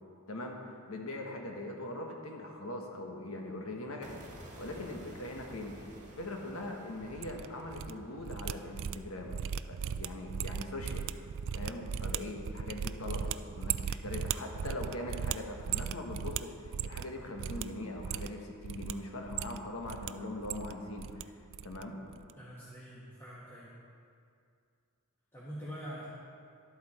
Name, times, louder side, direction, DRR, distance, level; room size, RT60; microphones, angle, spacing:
voice 1, 0.3-5.8 6.1-9.4 9.7-11.1 11.5-22.0, left 1 dB, 85° left, 1 dB, 1.4 m, -41 dB
sound 1, 4.0-10.3, right 1 dB, 35° right, 1.7 m, -53 dB
sound 2, 7.0-7.9 8.2-17.1 17.4-17.6 18.0-18.9 19.3-20.1 20.4-21.2 21.5-21.8 22.1-22.3, right 8 dB, 60° right, 0.3 m, -37 dB
voice 2, 22.4-23.7 25.3-26.1, equal, 10° left, -10 dB, 1.6 m, -45 dB
11.5 x 7.9 x 4.4 m, 2.3 s
head